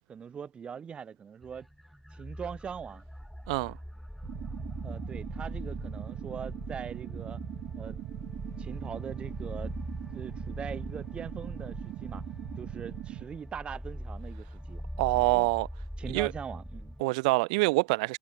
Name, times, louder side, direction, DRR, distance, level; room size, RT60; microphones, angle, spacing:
voice 1, 0.1-1.7 2.1-3.0 4.8-7.4 7.8-8.0 8.6-9.7 10.1-12.2 12.6-14.8 16.0-17.0, right 7 dB, 25° right, 2.0 m, -41 dB
sound 1, 1.4-17.0, equal, ahead, 2.3 m, -41 dB
sound 2, 4.2-13.2, right 16 dB, 50° right, 1.6 m, -41 dB
voice 2, 15.0-15.7 16.1-16.3 17.0-18.2, right 26 dB, 70° right, 0.7 m, -25 dB
supercardioid pair, 110°, 4 cm